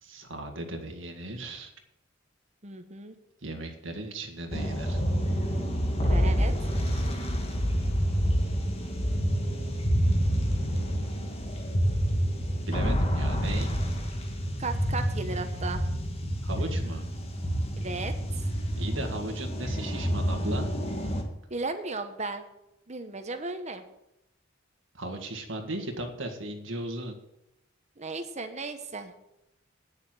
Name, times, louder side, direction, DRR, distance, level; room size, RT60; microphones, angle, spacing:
voice 1, 0.0-1.7 3.4-5.1 12.7-13.7 16.4-17.1 18.8-20.7 24.9-27.2, right 1 dB, 75° right, 4 dB, 1.8 m, -36 dB
voice 2, 2.6-3.2 6.0-6.5 14.6-15.8 17.8-18.1 21.5-22.4 22.9-23.8 28.0-29.1, right 3 dB, 35° right, 8 dB, 1.1 m, -35 dB
sound 1, 4.5-21.2, equal, 30° left, 1.6 m, -28 dB
9.6 x 7.0 x 7.8 m, 0.84 s
head